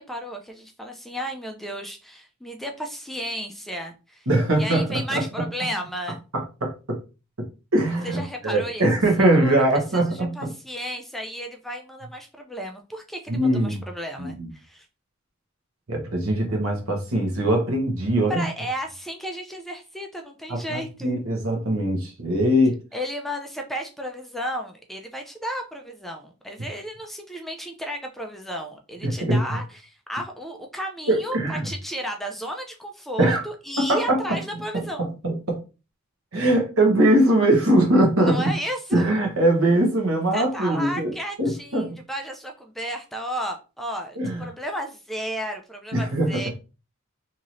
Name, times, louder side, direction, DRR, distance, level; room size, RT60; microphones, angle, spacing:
voice 1, 0.0-4.3 4.6-6.2 8.0-8.9 9.2-14.9 18.3-21.1 22.9-35.1 38.2-39.1 40.3-46.5, equal, ahead, 0.3 m, -33 dB
voice 2, 4.3-5.2 6.3-7.0 7.7-10.5 13.3-13.8 14.2-14.5 15.9-18.4 20.5-22.8 29.0-29.4 31.1-31.7 33.2-33.4 33.8-34.2 35.0-35.6 36.3-38.4 38.9-42.0 44.2-44.4 45.9-46.5, right 1 dB, 80° right, 1.0 m, -21 dB
3.0 x 2.7 x 2.6 m
head